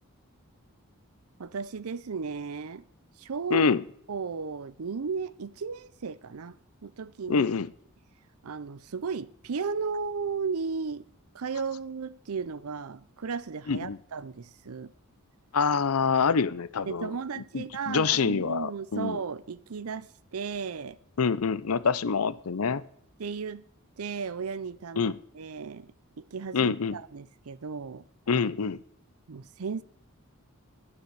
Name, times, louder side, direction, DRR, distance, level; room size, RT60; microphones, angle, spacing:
voice 1, 1.4-2.8 3.2-3.7 4.1-6.6 6.8-7.5 8.4-11.1 11.3-14.9 16.9-21.0 23.2-23.6 24.0-25.9 26.2-28.0 29.3-29.8, right 5 dB, 80° right, 0.6 m, -35 dB
voice 2, 3.5-3.8 7.3-7.7 13.7-14.0 15.5-17.1 17.5-19.2 21.2-22.8 25.0-25.1 26.5-27.0 28.3-28.8, left 5 dB, 80° left, 0.6 m, -26 dB
13.0 x 9.7 x 8.1 m
head